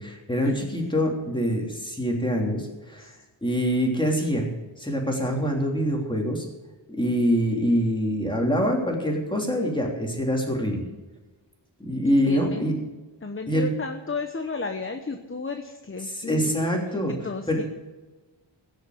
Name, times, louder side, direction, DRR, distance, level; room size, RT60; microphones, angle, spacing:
voice 1, 0.0-3.1 3.4-4.5 4.8-6.4 6.9-10.8 11.9-12.7 13.5-13.7 16.0-17.1 17.5-17.6, equal, 10° left, 0 dB, 3.2 m, -25 dB
voice 2, 12.0-12.7 13.2-17.6, left 4 dB, 25° left, 6 dB, 1.0 m, -33 dB
16.5 x 6.6 x 8.0 m, 1.2 s
wide cardioid pair, 95°, 46 cm